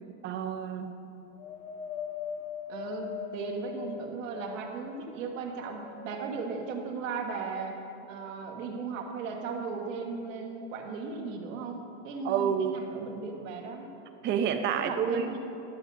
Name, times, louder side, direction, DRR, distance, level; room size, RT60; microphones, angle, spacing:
voice 1, 0.0-1.0 12.2-12.8 14.2-15.4, right 8 dB, 30° right, 8 dB, 0.5 m, -29 dB
Wind, 1.4-4.9 5.5-6.5 7.3-7.4, left 8 dB, 90° left, 0.7 m, -40 dB
voice 2, 2.7-7.8 8.1-13.9 14.7-15.4, right 5 dB, 80° right, 2 dB, 1.3 m, -36 dB
11.5 x 6.3 x 4.0 m, 2.8 s
supercardioid pair, 140°, 38 cm